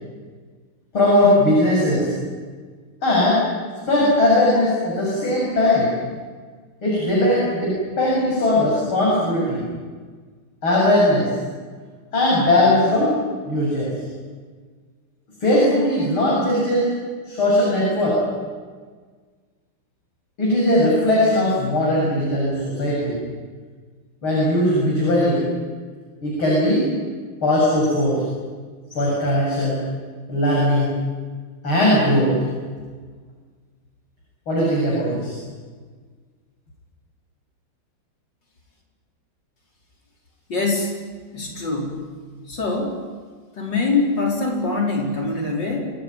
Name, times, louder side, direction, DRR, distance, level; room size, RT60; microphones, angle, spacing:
voice 1, 0.9-2.1 3.0-3.4 3.9-5.9 6.8-9.6 10.6-11.3 12.1-13.1 13.4-13.9 15.4-16.9 17.2-18.2 20.4-23.1 24.2-25.4 26.2-26.9 27.4-28.2 28.9-29.8 30.3-30.9 31.6-32.4 34.5-35.3, left 1 dB, 85° left, -5 dB, 8.5 m, -19 dB
voice 2, 40.5-40.9 41.3-42.1 42.5-43.0 43.6-45.8, left 3 dB, 60° left, 0 dB, 5.6 m, -23 dB
28.0 x 18.0 x 9.6 m, 1.5 s
omnidirectional pair, 2.2 m